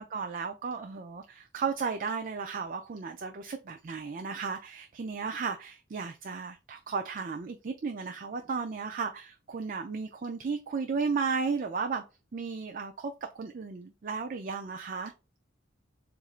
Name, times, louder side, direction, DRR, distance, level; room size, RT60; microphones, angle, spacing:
voice 1, 0.0-12.0 12.3-15.1, right 5 dB, 45° right, 0.4 m, -34 dB
7.2 x 2.6 x 2.4 m
head